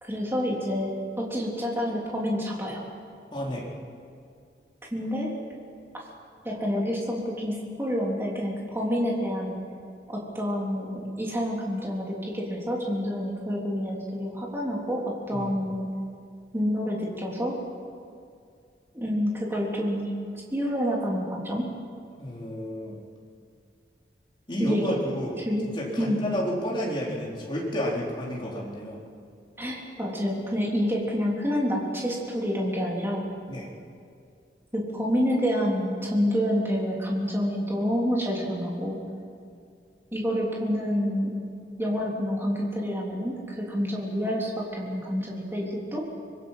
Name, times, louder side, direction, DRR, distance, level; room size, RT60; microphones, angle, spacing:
voice 1, 0.0-2.8 4.9-5.3 6.4-9.5 10.1-15.9 16.5-17.5 18.9-20.1 20.5-21.7 24.6-25.0 25.4-25.7 26.0-26.2 29.6-33.2 34.7-39.0 40.1-41.3 41.8-46.0, equal, 15° right, -3 dB, 3.6 m, -28 dB
voice 2, 3.3-3.6 15.3-15.5 22.2-23.0 24.5-25.4 25.8-29.0 33.5-33.7, equal, 30° left, -4 dB, 4.3 m, -31 dB
25.0 x 21.0 x 5.8 m, 2.3 s
head